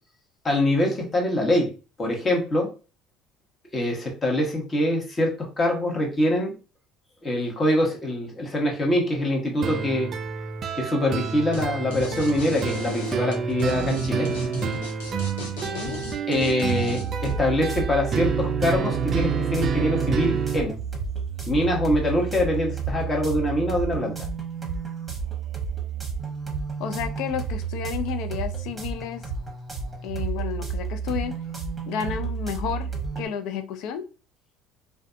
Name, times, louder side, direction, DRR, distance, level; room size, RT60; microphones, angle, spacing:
voice 1, 0.4-1.7 2.0-2.7 3.7-6.5 7.2-10.1 10.7-14.3 16.3-20.8 21.5-24.2, left 1 dB, 30° left, 1.0 m, -24 dB
sound 1, 9.6-20.6, right 6 dB, 45° right, 0.4 m, -29 dB
sound 2, 11.5-11.6 11.9-17.3, left 2 dB, 90° left, 0.8 m, -34 dB
voice 2, 15.4-16.0 26.8-29.3 30.0-31.4 31.9-32.9 33.2-34.1, left 8 dB, 70° left, 0.4 m, -31 dB
sound 3, 17.0-33.3, right 6 dB, 20° right, 0.9 m, -31 dB
2.5 x 2.3 x 2.4 m
supercardioid pair, 85°, 0 cm